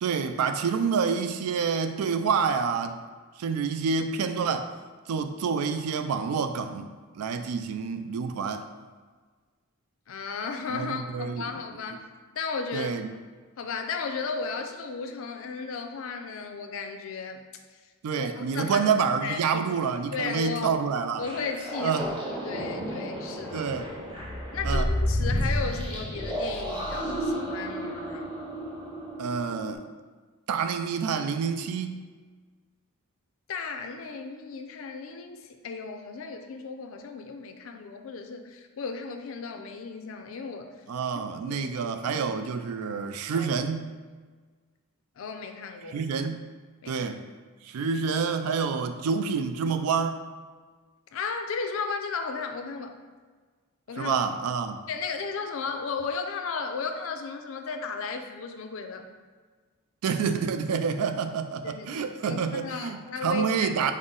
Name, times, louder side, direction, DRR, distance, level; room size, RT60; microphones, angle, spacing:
voice 1, 0.0-3.0 3.4-4.7 5.1-8.7 10.7-11.4 12.7-13.1 18.0-21.3 21.8-22.2 23.5-23.9 24.6-24.9 29.2-29.8 30.5-32.0 40.9-44.0 45.9-46.5 46.9-47.2 47.6-50.2 54.0-54.8 60.0-63.9, right 6 dB, 90° right, 8 dB, 0.3 m, -28 dB
voice 2, 10.1-12.0 12.3-12.9 13.6-17.4 18.1-18.9 19.2-19.6 20.1-20.8 21.2-23.7 24.5-28.3 33.5-40.7 41.4-42.2 43.3-43.5 45.2-46.0 46.8-47.0 51.1-53.0 53.9-54.2 54.9-59.1 61.6-63.7, left 5 dB, 65° left, 5 dB, 0.4 m, -35 dB
sound 1, 21.2-29.7, equal, 20° right, 0.7 m, -31 dB
5.4 x 2.0 x 3.7 m, 1.4 s
head